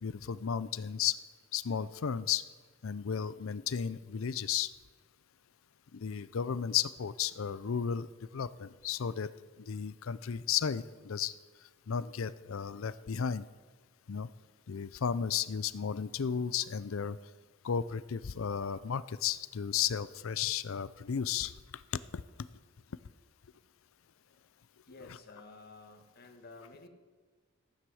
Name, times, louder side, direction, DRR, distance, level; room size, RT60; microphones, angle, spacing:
voice 1, 0.0-1.2 1.5-2.4 2.8-4.7 5.9-9.3 9.6-11.3 11.9-13.5 14.1-14.3 14.7-17.2 17.6-21.5 21.9-22.2, left 7 dB, 75° left, 16 dB, 0.5 m, -34 dB
voice 2, 24.9-26.9, left 3 dB, 50° left, 5 dB, 1.7 m, -53 dB
14.5 x 10.5 x 6.3 m, 1.4 s
head